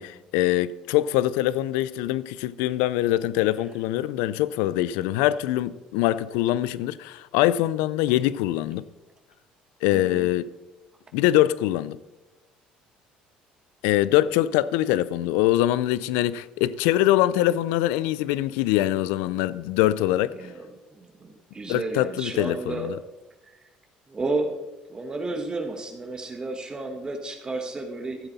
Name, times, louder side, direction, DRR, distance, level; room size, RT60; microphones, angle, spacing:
voice 1, 0.0-8.9 9.8-10.5 11.1-12.0 13.8-20.3 21.7-23.0, left 14 dB, 85° left, 0.4 m, -23 dB
voice 2, 9.9-10.3 20.3-22.9 23.4-23.6 24.1-24.6 24.9-28.3, right 2 dB, 25° right, 1.5 m, -32 dB
14.0 x 7.9 x 4.1 m
supercardioid pair, 85°, 3 cm